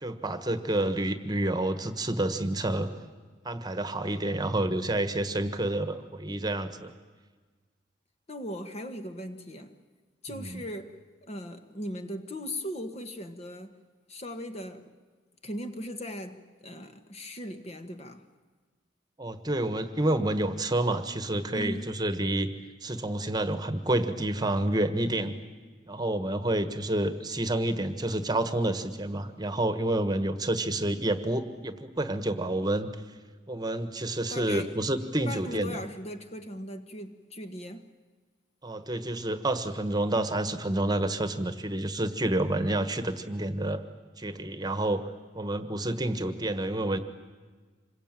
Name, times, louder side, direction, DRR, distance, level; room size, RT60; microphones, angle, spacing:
voice 1, 0.0-2.9 3.4-6.9 10.3-10.6 19.2-22.5 22.8-25.3 25.9-32.9 33.5-35.8 38.6-43.8 44.2-45.0 45.3-47.0, right 1 dB, 20° right, 1.4 m, -29 dB
voice 2, 8.3-9.8 10.2-13.8 14.1-14.9 15.4-18.3 21.5-21.9 34.3-34.7 35.3-37.9, equal, 35° left, 1.6 m, -38 dB
26.5 x 22.5 x 9.1 m
head